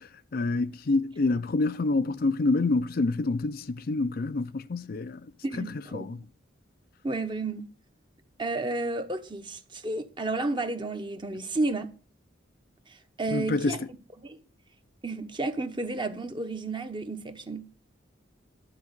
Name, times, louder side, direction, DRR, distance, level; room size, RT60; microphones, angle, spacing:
voice 1, 0.3-5.2 5.6-6.2 13.3-13.8, left 3 dB, 50° left, 0.5 m, -27 dB
voice 2, 5.4-6.2 7.0-7.7 8.4-12.0 12.9-13.8 14.2-14.4 15.0-17.7, right 2 dB, 25° right, 1.1 m, -32 dB
12.0 x 4.7 x 8.0 m
head